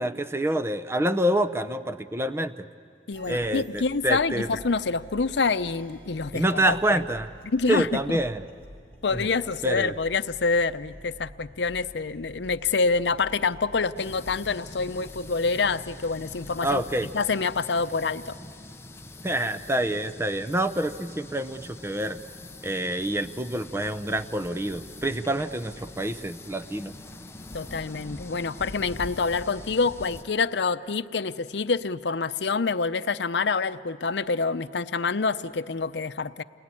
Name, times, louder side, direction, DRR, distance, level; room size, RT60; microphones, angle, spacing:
voice 1, 0.0-2.7 3.3-4.5 6.3-7.3 7.7-8.4 9.1-9.3 9.6-9.9 16.6-17.1 19.2-22.2 22.6-26.9, right 1 dB, 15° right, 11 dB, 0.7 m, -27 dB
voice 2, 3.1-7.0 7.4-8.2 9.0-18.4 27.5-36.4, left 4 dB, 75° left, 12 dB, 0.7 m, -27 dB
sound 1, 3.1-16.6, left 1 dB, 30° right, 3.7 m, -49 dB
sound 2, 13.9-30.2, left 2 dB, 15° left, 0.8 m, -44 dB
29.0 x 21.0 x 9.8 m, 2.2 s
head